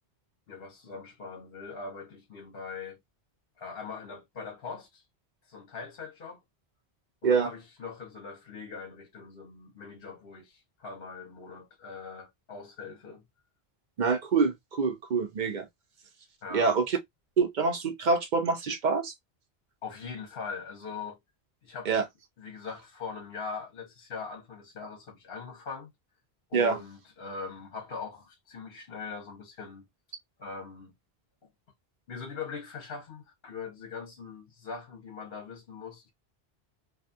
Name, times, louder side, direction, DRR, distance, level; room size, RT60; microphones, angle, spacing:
voice 1, 0.5-3.0 3.6-5.0 5.5-6.4 7.2-13.2 16.4-16.7 19.8-21.2 21.6-22.1 22.4-25.9 26.5-29.9 30.4-30.9 32.1-36.1, left 5 dB, 65° left, 0.9 m, -41 dB
voice 2, 14.0-15.6 16.5-17.0 17.4-19.1 21.9-22.0 26.5-26.8, right 5 dB, 55° right, 0.6 m, -26 dB
2.5 x 2.3 x 2.5 m
omnidirectional pair, 1.1 m